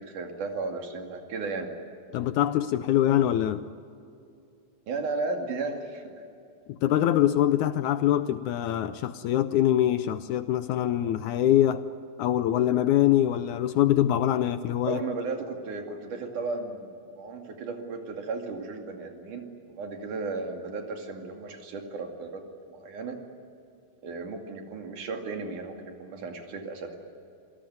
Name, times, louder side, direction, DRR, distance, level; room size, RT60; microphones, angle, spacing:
voice 1, 0.0-1.7 4.9-6.2 14.9-22.4 22.7-23.2 24.0-27.0, right 3 dB, 65° right, 3.9 m, -35 dB
voice 2, 2.1-3.6 6.8-11.8 12.2-15.0, left 12 dB, 75° left, 1.8 m, -24 dB
27.5 x 18.0 x 9.3 m
omnidirectional pair, 4.0 m